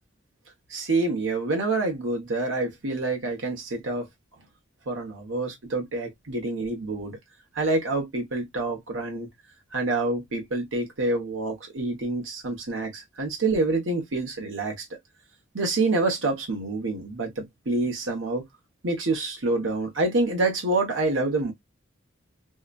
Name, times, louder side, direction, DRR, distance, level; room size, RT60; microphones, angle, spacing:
voice 1, 0.7-4.1 4.9-7.2 7.5-9.3 9.7-14.9 15.5-18.4 18.8-21.5, right 2 dB, 85° right, 1.1 m, -27 dB
2.8 x 2.3 x 2.3 m
head